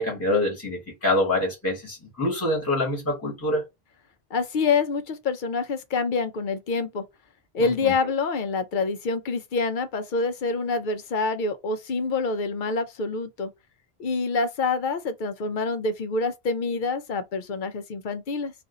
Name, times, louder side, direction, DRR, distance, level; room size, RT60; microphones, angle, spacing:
voice 1, 0.0-3.6 7.6-7.9, left 1 dB, 15° left, 1.2 m, -25 dB
voice 2, 4.3-7.0 7.5-13.5 14.0-18.5, left 4 dB, 60° left, 0.6 m, -26 dB
2.6 x 2.5 x 3.7 m
omnidirectional pair, 1.1 m